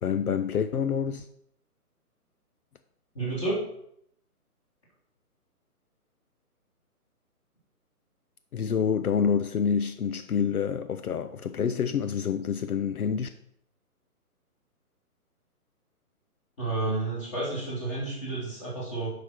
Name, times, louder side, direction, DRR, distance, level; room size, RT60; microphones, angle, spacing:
voice 1, 0.0-1.3 8.5-13.3, left 7 dB, 70° left, 0.7 m, -27 dB
voice 2, 3.1-3.6 16.6-19.1, right 2 dB, 20° left, 3.0 m, -30 dB
8.1 x 5.2 x 6.1 m
hypercardioid pair, 170°, 46 cm